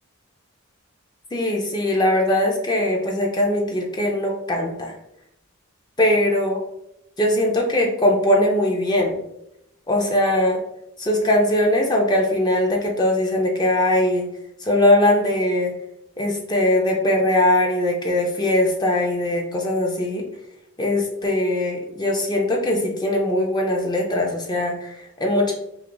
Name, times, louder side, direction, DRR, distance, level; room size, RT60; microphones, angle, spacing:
voice 1, 1.3-4.9 6.0-6.6 7.2-9.2 9.9-10.6 11.0-14.3 14.6-15.7 16.2-20.3 20.8-25.5, left 1 dB, 20° left, 0 dB, 0.4 m, -20 dB
2.8 x 2.3 x 3.7 m, 0.82 s
head